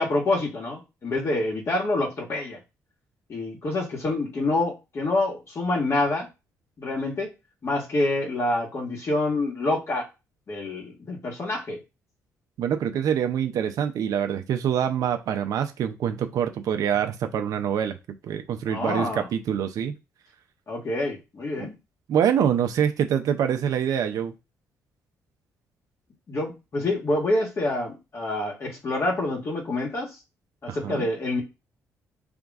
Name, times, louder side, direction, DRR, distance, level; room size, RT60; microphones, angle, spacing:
voice 1, 0.0-2.6 3.3-6.3 6.8-7.3 7.6-10.1 10.5-11.8 18.7-19.3 20.7-21.7 26.3-30.1 30.6-31.4, left 2 dB, 45° left, 1.8 m, -27 dB
voice 2, 12.6-18.0 18.2-19.9 21.6-21.7 22.1-24.3 30.7-31.1, right 8 dB, 70° right, 0.7 m, -25 dB
3.8 x 3.5 x 3.7 m
cardioid pair, 80°, 6 cm